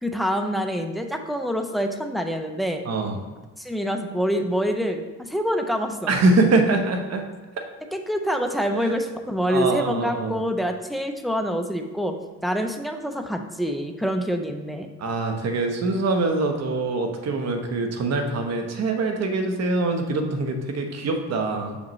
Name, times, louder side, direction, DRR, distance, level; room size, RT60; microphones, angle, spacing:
voice 1, 0.0-2.8 3.6-6.1 7.9-14.9, equal, ahead, 5 dB, 0.6 m, -26 dB
voice 2, 2.8-3.2 6.1-7.2 8.7-8.9 9.5-10.4 15.0-21.8, right 3 dB, 60° right, 4 dB, 1.0 m, -24 dB
6.8 x 5.2 x 3.1 m, 1.2 s
cardioid pair, 90°, 30 cm